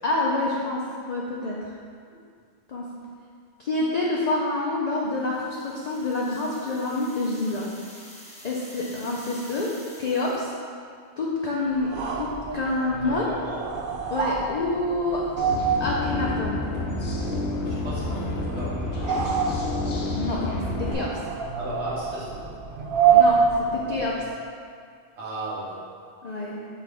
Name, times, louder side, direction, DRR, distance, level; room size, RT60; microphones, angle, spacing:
voice 1, 0.0-1.7 2.7-2.9 3.6-7.7 8.4-10.5 11.2-13.3 14.1-15.2 15.8-16.6 20.1-20.4 20.7-21.2 23.1-24.2 26.2-26.6, left 2 dB, 50° left, -4 dB, 0.6 m, -27 dB
sound 1, 5.1-10.7, equal, 5° left, 0.6 m, -47 dB
sound 2, 11.8-24.3, right 6 dB, 60° right, 0.7 m, -27 dB
voice 2, 13.0-13.7 17.6-18.9 21.5-22.5 25.2-25.9, right 1 dB, 85° right, -8 dB, 1.5 m, -35 dB
sound 3, 15.4-20.9, left 2 dB, 85° left, 1.2 m, -29 dB
5.8 x 3.7 x 4.8 m, 2.2 s
omnidirectional pair, 1.1 m